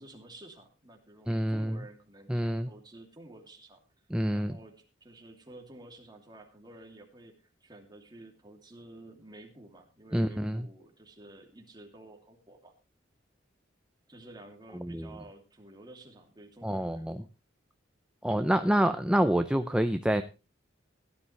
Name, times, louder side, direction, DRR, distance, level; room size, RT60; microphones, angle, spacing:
voice 1, 0.0-3.8 4.3-12.7 14.1-17.3, right 2 dB, 25° right, 2 dB, 2.8 m, -51 dB
voice 2, 1.3-1.8 2.3-2.7 4.1-4.6 10.1-10.7 14.7-15.1 16.6-17.2 18.2-20.2, equal, 5° right, 8 dB, 0.6 m, -27 dB
17.0 x 11.5 x 3.3 m, 0.30 s
head